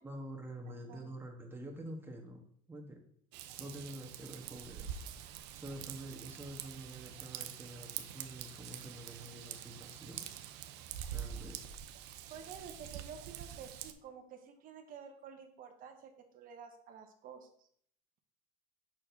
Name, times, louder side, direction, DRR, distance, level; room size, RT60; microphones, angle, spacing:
voice 1, 0.0-2.4 2.7-3.0 3.6-5.0 5.5-10.3 11.1-11.6, right 1 dB, 10° right, 1 dB, 1.2 m, -47 dB
Raindrop / Vehicle horn car horn honking / Trickle dribble, 3.3-13.9, right 10 dB, 65° right, 0.6 m, -46 dB
voice 2, 12.3-17.7, right 7 dB, 50° right, 5 dB, 0.9 m, -51 dB
6.3 x 6.0 x 2.7 m, 0.64 s
supercardioid pair, 105°, 19 cm